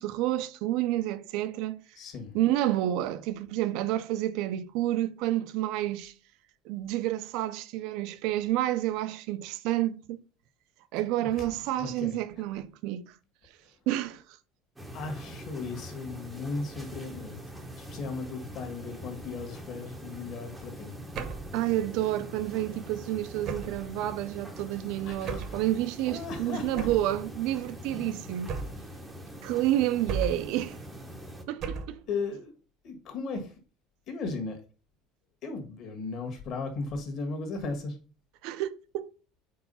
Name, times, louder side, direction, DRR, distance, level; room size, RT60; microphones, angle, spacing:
voice 1, 0.0-1.8 2.3-6.1 6.6-10.2 10.9-13.1 13.9-14.2 21.5-28.6 29.4-30.8 31.5-32.0 38.4-39.1, right 14 dB, 55° right, 0.5 m, -29 dB
voice 2, 2.0-2.3 11.2-11.5 11.8-12.4 14.9-17.4 17.8-21.3 25.0-25.6 26.1-26.9 32.1-32.5 32.8-33.5 34.1-34.6 35.4-38.0, left 4 dB, 40° left, 1.5 m, -36 dB
sound 1, 14.8-31.4, right 1 dB, 5° right, 0.8 m, -43 dB
sound 2, 21.1-21.6 23.4-23.9 25.3-25.6 26.8-27.1 28.5-28.9 30.1-30.6 31.6-32.0, right 5 dB, 35° right, 0.9 m, -35 dB
4.7 x 4.6 x 5.5 m
cardioid pair, 175°, 0 cm